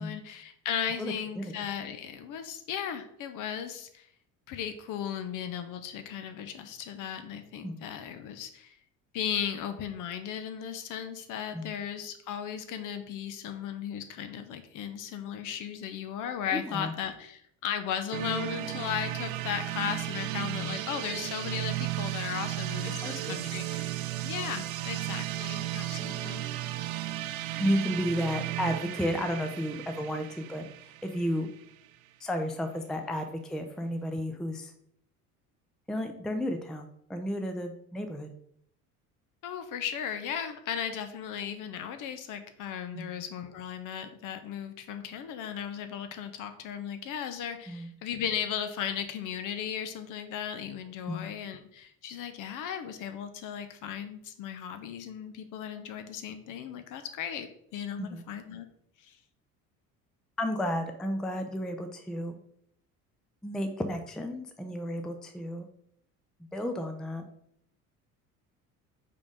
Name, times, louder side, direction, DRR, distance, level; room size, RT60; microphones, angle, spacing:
voice 1, 0.0-4.1 4.5-8.8 9.1-23.9 24.2-26.5 39.4-58.7 59.0-59.2, left 8 dB, 40° left, 9 dB, 0.9 m, -36 dB
voice 2, 1.0-1.5 7.6-7.9 11.5-11.8 16.5-16.9 20.6-20.8 22.8-23.4 27.6-30.6 31.0-31.5 32.2-34.7 35.9-38.3 42.9-43.1 47.7-47.9 51.1-51.3 58.0-58.2 60.4-62.4 63.4-65.7 66.5-67.2, equal, ahead, 6 dB, 0.5 m, -32 dB
sound 1, 18.1-31.9, right 15 dB, 65° right, 0.6 m, -35 dB
5.2 x 4.8 x 5.0 m, 0.69 s
figure-of-eight pair, 60°, 46 cm